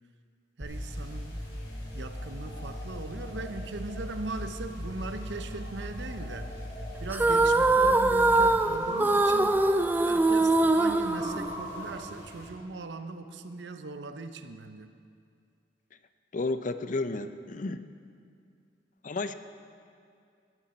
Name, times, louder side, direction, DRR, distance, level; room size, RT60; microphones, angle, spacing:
sound 1, 0.6-12.5, equal, 70° left, 3.4 m, -45 dB
sound 2, 0.6-9.6, equal, 10° left, 1.1 m, -40 dB
voice 1, 0.6-1.4 1.9-6.5 7.0-9.6 10.0-14.9, right 3 dB, 80° right, 9 dB, 0.7 m, -39 dB
sound 3, 7.1-11.9, right 2 dB, 10° right, 0.3 m, -23 dB
voice 2, 16.3-17.8 19.0-19.3, left 3 dB, 45° left, 11 dB, 0.5 m, -32 dB
15.5 x 11.5 x 4.3 m, 2.3 s
head